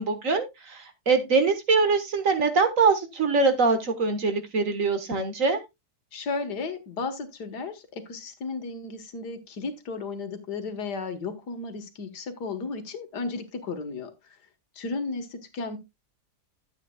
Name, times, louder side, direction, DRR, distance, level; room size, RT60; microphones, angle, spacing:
voice 1, 0.0-5.6, right 4 dB, 55° right, 1.7 m, -23 dB
voice 2, 6.1-14.1 14.8-15.8, left 4 dB, 75° left, 2.0 m, -34 dB
12.5 x 8.4 x 2.3 m
omnidirectional pair, 1.8 m